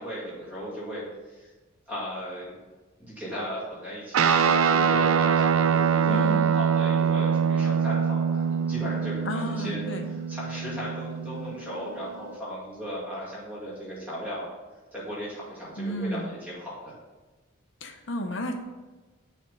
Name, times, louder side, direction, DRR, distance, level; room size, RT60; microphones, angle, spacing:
voice 1, 0.0-1.5 1.9-2.6 3.0-9.8 10.1-14.5 14.9-17.0, equal, 10° right, -8 dB, 2.1 m, -36 dB
Guitar, 4.1-11.8, right 6 dB, 85° right, 0.4 m, -24 dB
voice 2, 6.0-6.5 9.3-10.1 15.8-16.3 17.8-18.5, equal, 65° left, 5 dB, 0.8 m, -32 dB
7.4 x 3.5 x 5.3 m, 1.2 s
head